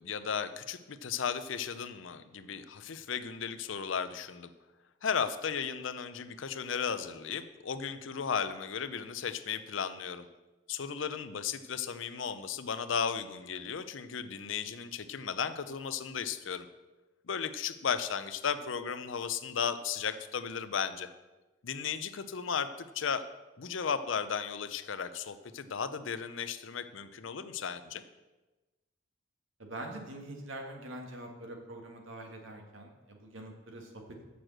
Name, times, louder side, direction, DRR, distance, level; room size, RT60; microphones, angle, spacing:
voice 1, 0.0-4.5 5.0-10.2 10.7-16.7 17.3-21.1 21.6-23.2 23.6-28.0, left 6 dB, 75° left, 12 dB, 0.6 m, -35 dB
voice 2, 29.6-34.2, right 1 dB, 80° right, 2 dB, 1.7 m, -44 dB
6.9 x 6.2 x 7.6 m, 1.1 s
head